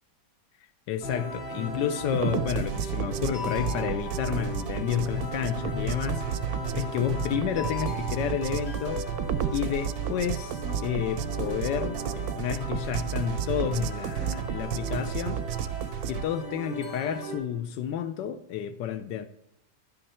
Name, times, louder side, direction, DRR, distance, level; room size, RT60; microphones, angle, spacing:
voice 1, 0.9-6.2 6.7-9.0 9.5-15.4 16.1-19.3, left 9 dB, 85° left, 1.2 m, -30 dB
sound 1, 1.0-17.4, left 1 dB, 55° left, 2.4 m, -37 dB
sound 2, 2.1-16.2, right 9 dB, 70° right, 0.9 m, -32 dB
10.5 x 6.5 x 4.2 m
omnidirectional pair, 1.9 m